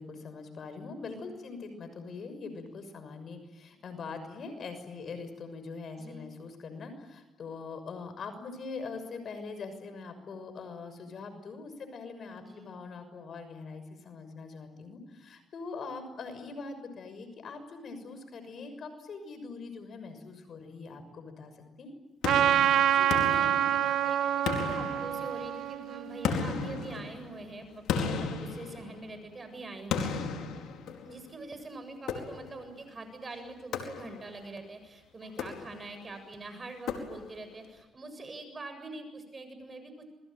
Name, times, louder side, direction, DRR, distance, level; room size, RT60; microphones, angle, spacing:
voice 1, 0.0-22.0, left 4 dB, 55° left, 9 dB, 6.4 m, -42 dB
voice 2, 6.0-6.4 12.4-12.8 22.9-30.2 31.0-40.1, right 2 dB, 30° right, 8 dB, 7.7 m, -44 dB
sound 1, 22.2-24.0 24.5-25.6 26.2-29.3 29.9-31.3 32.1-32.7 33.7-34.4 35.3-36.0 36.9-37.5, left 6 dB, 80° left, 4.5 m, -35 dB
Trumpet, 22.2-26.9, right 10 dB, 80° right, 1.4 m, -27 dB
28.0 x 22.0 x 9.1 m, 1.0 s
cardioid pair, 90°, 0 cm